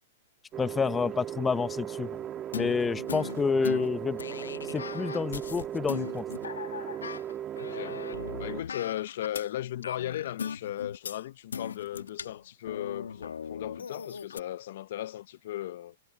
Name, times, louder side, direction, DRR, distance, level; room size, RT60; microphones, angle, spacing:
sound 1, 0.5-8.6, right 10 dB, 25° right, 1.3 m, -37 dB
voice 1, 0.6-2.2 2.5-4.2 4.7-6.2, left 5 dB, 15° left, 0.8 m, -29 dB
sound 2, 2.5-9.5 9.8-11.2 11.5-14.4, left 6 dB, 90° left, 1.4 m, -39 dB
voice 2, 7.6-8.0 8.4-15.9, left 13 dB, 60° left, 0.7 m, -36 dB
hypercardioid pair, 125°, 0 cm